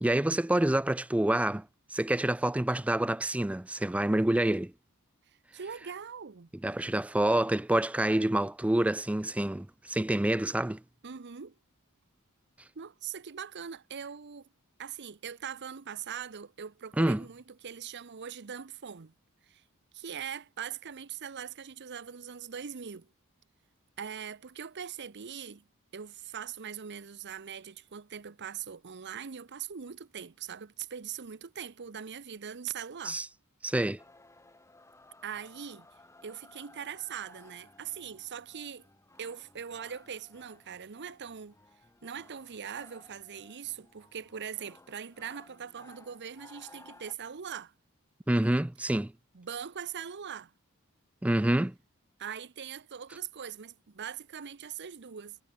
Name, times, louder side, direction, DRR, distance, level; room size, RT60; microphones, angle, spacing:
voice 1, 0.0-4.7 6.6-10.8 17.0-17.2 33.0-33.3 33.6-34.0 48.3-49.1 51.2-51.7, right 1 dB, 5° right, 0.3 m, -27 dB
voice 2, 5.5-6.5 11.0-11.5 12.8-14.5 14.8-19.1 19.5-19.6 19.9-23.1 24.0-25.6 25.9-33.2 35.2-35.9 36.2-38.9 39.2-41.5 42.0-47.7 49.3-50.5 52.2-55.4, right 8 dB, 55° right, 0.8 m, -41 dB
sound 1, 34.0-47.1, left 2 dB, 15° left, 1.9 m, -58 dB
head